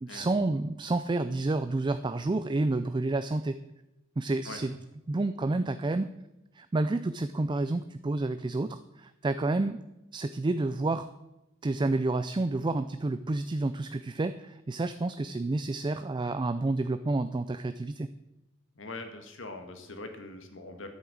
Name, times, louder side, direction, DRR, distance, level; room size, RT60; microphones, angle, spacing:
voice 1, 0.0-3.6 4.2-4.8 5.1-6.1 6.5-9.8 10.1-11.1 11.6-18.1, right 2 dB, 25° right, 11 dB, 0.4 m, -29 dB
voice 2, 18.7-20.9, left 2 dB, 70° left, 6 dB, 1.8 m, -42 dB
10.5 x 8.4 x 7.9 m, 0.95 s
head